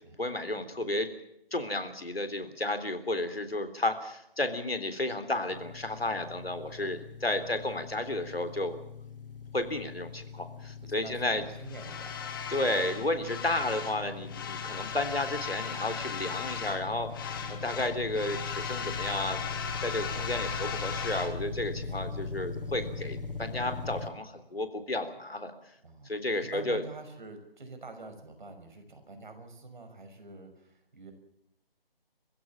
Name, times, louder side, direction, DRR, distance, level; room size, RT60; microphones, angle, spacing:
voice 1, 0.2-1.1 1.5-8.8 9.5-11.4 12.5-25.5 26.1-26.8, left 2 dB, 80° left, 9 dB, 3.7 m, -32 dB
sound 1, 5.5-24.1, left 4 dB, 65° left, 3.1 m, -41 dB
voice 2, 10.8-12.1 17.3-17.8 21.8-22.3 25.8-31.1, right 3 dB, 50° right, 6 dB, 6.0 m, -47 dB
sound 2, 11.7-14.0 14.3-16.9 17.1-21.3, left 7 dB, 20° left, 1.8 m, -37 dB
27.0 x 16.0 x 7.3 m, 0.79 s
figure-of-eight pair, 155°, 30 cm